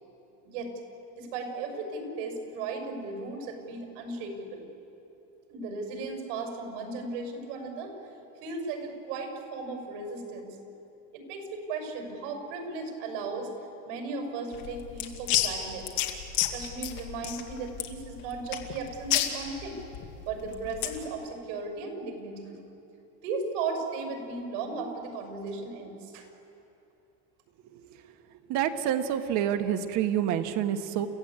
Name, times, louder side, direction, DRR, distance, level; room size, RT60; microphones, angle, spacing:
voice 1, 1.2-4.7 5.5-8.0 8.4-10.6 11.1-13.5 13.8-15.9 16.5-19.8 20.3-22.6 23.2-26.3, right 3 dB, 80° right, 4 dB, 6.4 m, -36 dB
sound 1, 14.5-21.0, left 12 dB, 65° left, 2.4 m, -31 dB
voice 2, 28.5-31.1, right 10 dB, 55° right, 7 dB, 1.6 m, -27 dB
30.0 x 15.5 x 8.9 m, 2.9 s
cardioid pair, 150°, 36 cm